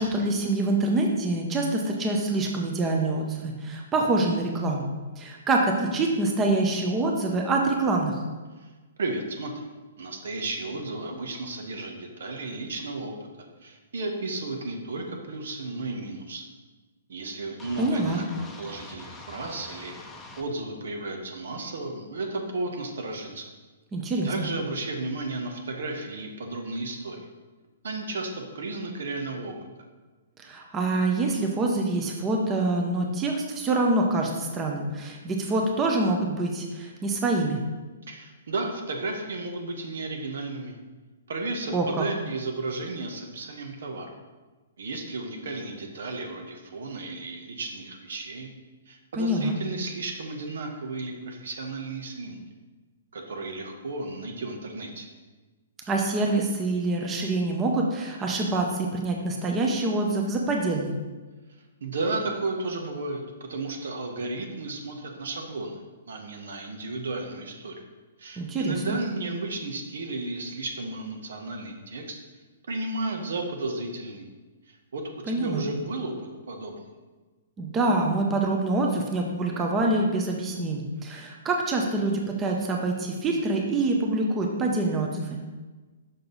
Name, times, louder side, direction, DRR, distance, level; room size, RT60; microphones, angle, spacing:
voice 1, 0.0-8.2 17.8-18.2 23.9-24.5 30.4-37.6 41.7-42.0 49.2-49.5 55.9-60.9 68.4-68.8 75.3-75.6 77.6-85.4, right 2 dB, 20° right, 1 dB, 0.8 m, -26 dB
voice 2, 9.0-9.5 10.0-13.3 13.6-16.4 17.1-19.9 20.4-23.5 24.2-27.3 27.8-29.6 38.1-40.8 41.3-44.1 44.8-48.5 48.9-52.4 53.1-55.1 61.8-67.8 68.2-72.2 72.7-74.3 74.7-76.1 76.5-76.9, right 2 dB, 75° right, 3 dB, 1.1 m, -33 dB
sound 1, 17.6-20.5, left 2 dB, 10° left, 0.7 m, -45 dB
5.9 x 5.2 x 4.0 m, 1.3 s
hypercardioid pair, 140°, 0 cm